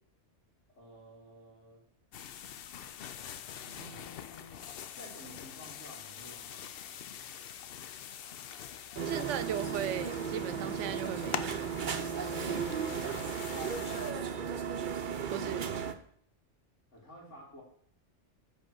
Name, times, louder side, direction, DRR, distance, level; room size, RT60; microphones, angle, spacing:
voice 1, 0.7-1.8 3.6-4.6 4.9-7.0 12.5-14.0 16.9-17.6, equal, 90° left, -2 dB, 3.1 m, -52 dB
sound 1, 2.1-14.1, left 9 dB, 60° left, 0.7 m, -45 dB
sound 2, 9.0-15.9, right 6 dB, 50° right, 0.8 m, -35 dB
voice 2, 9.0-11.8 15.3-15.7, right 10 dB, 85° right, 13 dB, 0.9 m, -37 dB
7.6 x 4.9 x 6.2 m, 0.63 s
omnidirectional pair, 1.2 m